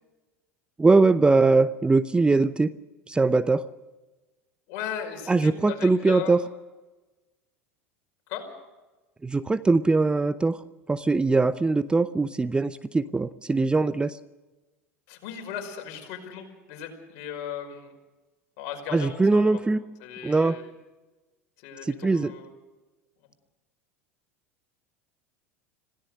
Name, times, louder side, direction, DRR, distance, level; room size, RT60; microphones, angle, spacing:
voice 1, 0.8-2.7 3.1-3.6 5.3-6.4 9.2-10.6 10.9-14.2 18.9-19.8 20.2-20.6 22.0-22.3, right 3 dB, 15° right, 14 dB, 0.7 m, -21 dB
voice 2, 4.7-6.4 8.3-8.4 15.1-17.9 18.6-19.6 20.0-20.6 21.6-22.5, left 9 dB, 55° left, 4 dB, 5.3 m, -37 dB
26.5 x 17.0 x 6.5 m, 1.1 s
hypercardioid pair, 80°, 7 cm